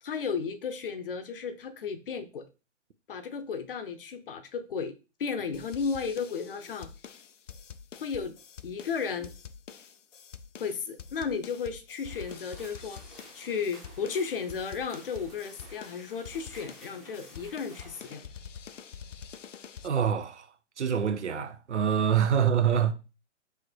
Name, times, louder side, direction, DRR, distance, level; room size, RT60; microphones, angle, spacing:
voice 1, 0.0-2.5 3.1-4.9 5.2-6.9 8.0-8.4 8.6-9.3 10.6-13.0 13.3-18.3 22.3-22.5, left 5 dB, 50° left, 0.7 m, -34 dB
sound 1, 5.5-19.9, left 7 dB, 80° left, 0.6 m, -47 dB
sound 2, 12.0-18.2, right 1 dB, ahead, 0.7 m, -53 dB
voice 2, 19.8-20.5 20.8-22.9, right 8 dB, 70° right, 0.8 m, -25 dB
3.5 x 3.2 x 4.5 m
figure-of-eight pair, 135°, 36 cm